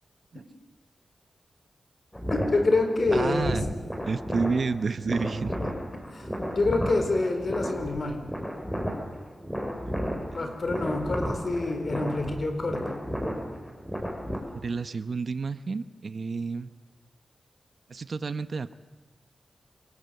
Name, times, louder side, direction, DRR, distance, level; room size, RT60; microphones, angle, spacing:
sound 1, 2.1-14.4, equal, 10° left, 6.2 m, -33 dB
voice 1, 2.3-3.6 6.1-8.2 10.3-13.0, left 2 dB, 55° left, 6 dB, 4.8 m, -27 dB
voice 2, 3.1-3.7 4.0-5.7 9.8-9.9 10.3-10.6 14.5-16.7 17.9-18.7, right 4 dB, 60° right, 13 dB, 1.0 m, -30 dB
27.5 x 20.0 x 7.9 m, 1.2 s
cardioid pair, 65°, 0 cm